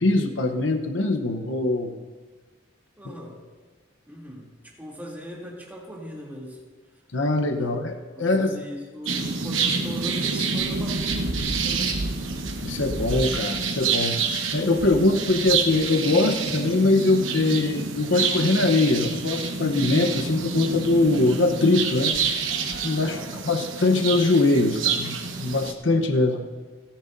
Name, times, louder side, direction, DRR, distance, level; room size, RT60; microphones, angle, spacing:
voice 1, 0.0-1.9 3.0-3.1 7.1-8.6 12.6-14.2 14.5-22.1 22.8-23.2 23.4-26.4, left 2 dB, 70° left, 5 dB, 0.9 m, -22 dB
voice 2, 3.0-3.3 4.1-6.6 7.6-7.7 8.2-12.0 23.0-23.8, equal, 10° right, -4 dB, 2.9 m, -39 dB
sound 1, 9.0-25.7, right 5 dB, 85° right, 1.1 m, -28 dB
28.0 x 10.5 x 2.7 m, 1.4 s
head